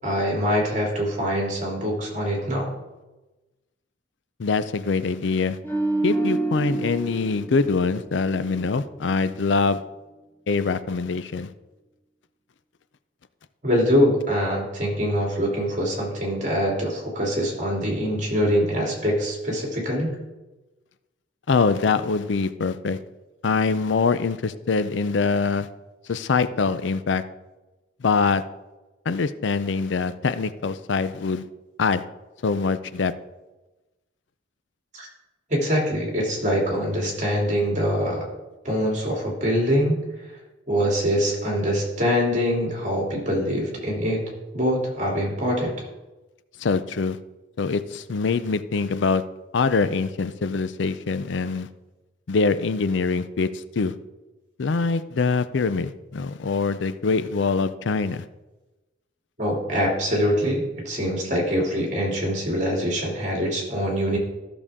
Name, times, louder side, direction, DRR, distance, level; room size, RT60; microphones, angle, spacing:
voice 1, 0.0-2.7 13.6-20.2 35.0-35.1 35.5-38.3 38.6-40.0 40.7-45.7 59.4-64.2, equal, 40° right, -2 dB, 2.9 m, -24 dB
voice 2, 4.4-5.6 6.0-9.8 10.5-11.5 21.5-23.0 23.4-25.7 26.1-27.2 28.0-28.4 29.1-31.4 31.8-32.0 32.4-33.1 46.6-47.2 47.6-49.2 49.5-51.7 52.3-53.9 54.6-58.2, left 4 dB, 80° left, 14 dB, 0.5 m, -24 dB
sound 1, 5.6-8.9 9.2-9.5, right 2 dB, 10° left, 1.2 m, -28 dB
14.0 x 6.9 x 3.6 m, 1.1 s
head